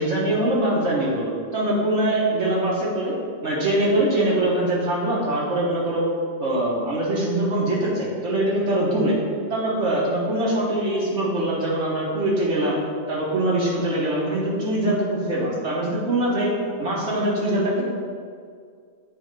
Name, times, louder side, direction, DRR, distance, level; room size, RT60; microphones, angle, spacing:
voice 1, 0.0-3.1 3.4-6.0 6.4-9.2 9.5-12.8 13.1-16.5 16.8-17.8, right 1 dB, 60° right, -6 dB, 1.7 m, -23 dB
8.2 x 3.6 x 4.7 m, 2.1 s
omnidirectional pair, 1.4 m